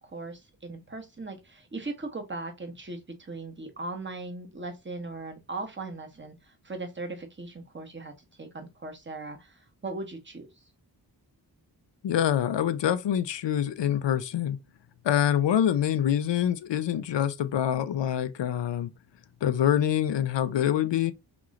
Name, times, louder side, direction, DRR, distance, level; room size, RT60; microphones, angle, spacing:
voice 1, 0.0-8.1 8.4-10.5, right 3 dB, 25° right, 1.2 m, -38 dB
voice 2, 12.0-14.6 15.0-18.9 19.4-21.1, left 10 dB, 80° left, 0.6 m, -25 dB
5.9 x 3.0 x 2.5 m
cardioid pair, 65°, 43 cm